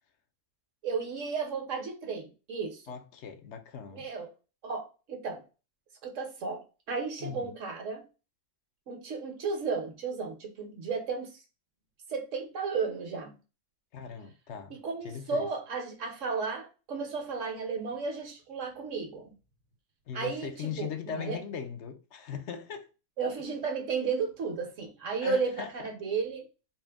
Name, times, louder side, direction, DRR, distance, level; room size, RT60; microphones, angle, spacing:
voice 1, 0.8-2.8 3.9-4.3 4.6-5.4 6.0-6.6 6.9-8.0 8.9-11.4 12.1-13.3 14.7-19.3 20.1-21.4 23.2-26.4, right 5 dB, 75° right, 1.4 m, -34 dB
voice 2, 2.9-4.1 7.2-7.5 13.9-14.8 15.0-15.5 20.1-22.9 25.2-25.9, left 7 dB, 70° left, 0.9 m, -39 dB
4.3 x 2.2 x 3.4 m
omnidirectional pair, 1.3 m